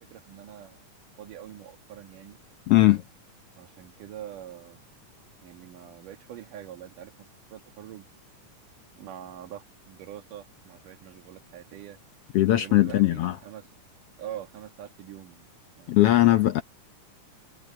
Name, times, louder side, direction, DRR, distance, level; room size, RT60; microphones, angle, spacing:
voice 1, 0.1-0.8 1.2-2.4 3.6-4.8 5.4-8.0 9.0-12.0 12.5-13.7 14.2-15.5 15.7-16.0 16.2-16.6, right 11 dB, 85° right, 3.3 m, -44 dB
voice 2, 2.7-3.0 12.3-13.4 15.9-16.6, left 15 dB, 75° left, 1.4 m, -19 dB
omnidirectional pair, 3.6 m